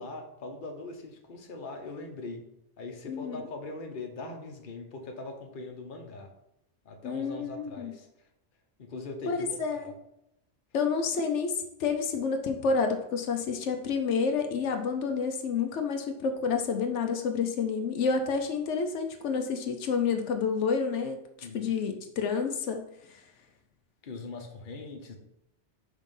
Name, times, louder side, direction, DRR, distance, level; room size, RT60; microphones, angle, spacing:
voice 1, 0.0-2.4 2.8-6.3 6.8-8.1 8.8-9.5 9.8-9.9 21.4-21.7 24.0-25.1, left 2 dB, 50° left, 3 dB, 1.0 m, -41 dB
voice 2, 3.1-3.5 7.0-7.9 9.3-9.9 10.7-22.8, left 5 dB, 85° left, 5 dB, 1.0 m, -29 dB
5.4 x 3.6 x 5.3 m, 0.81 s
omnidirectional pair, 1.2 m